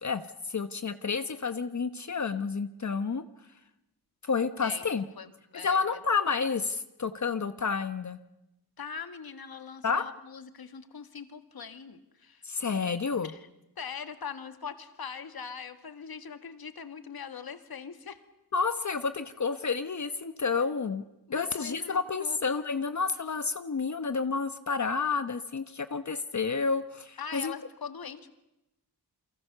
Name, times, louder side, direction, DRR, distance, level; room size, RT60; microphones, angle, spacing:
voice 1, 0.0-3.2 4.2-5.0 5.6-8.2 9.8-10.1 12.4-13.3 18.5-21.0 21.3-27.5, left 5 dB, 45° left, 10 dB, 1.1 m, -30 dB
voice 2, 4.6-5.8 8.8-12.4 13.2-13.5 13.8-18.2 21.3-22.4 27.2-28.3, left 6 dB, 65° left, 9 dB, 1.9 m, -42 dB
29.0 x 24.0 x 6.8 m, 0.93 s
wide cardioid pair, 95°, 39 cm